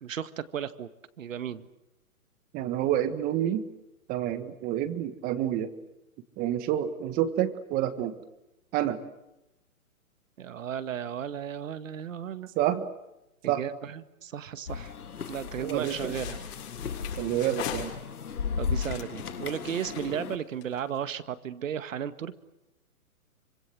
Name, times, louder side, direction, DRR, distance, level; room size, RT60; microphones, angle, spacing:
voice 1, 0.0-0.9 1.2-1.7 10.4-12.5 13.4-14.9 15.3-16.4 18.6-22.4, right 9 dB, 60° right, 12 dB, 2.0 m, -35 dB
voice 2, 2.5-3.6 4.1-5.7 6.4-8.1 8.7-9.0 12.5-12.9 13.5-13.6 15.6-16.1 17.2-17.9, right 11 dB, 20° right, 12 dB, 1.6 m, -28 dB
sound 1, 14.7-20.4, left 6 dB, 85° left, 2.1 m, -35 dB
sound 2, 15.8-18.3 18.7-21.0, left 10 dB, 45° left, 6.6 m, -42 dB
26.5 x 25.5 x 7.9 m, 0.92 s
hypercardioid pair, 150°, 44 cm